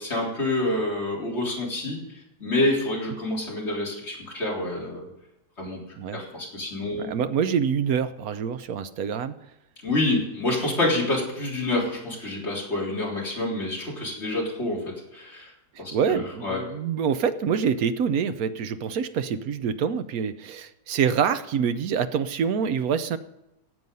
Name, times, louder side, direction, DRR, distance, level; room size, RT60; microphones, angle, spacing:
voice 1, 0.0-2.0 2.4-5.0 5.6-5.8 6.1-7.1 9.8-15.5 15.8-16.6, left 2 dB, 40° left, -4 dB, 4.0 m, -27 dB
voice 2, 7.0-9.3 15.9-23.2, right 7 dB, 65° right, 11 dB, 1.1 m, -26 dB
17.5 x 7.9 x 5.5 m, 0.88 s
omnidirectional pair, 1.8 m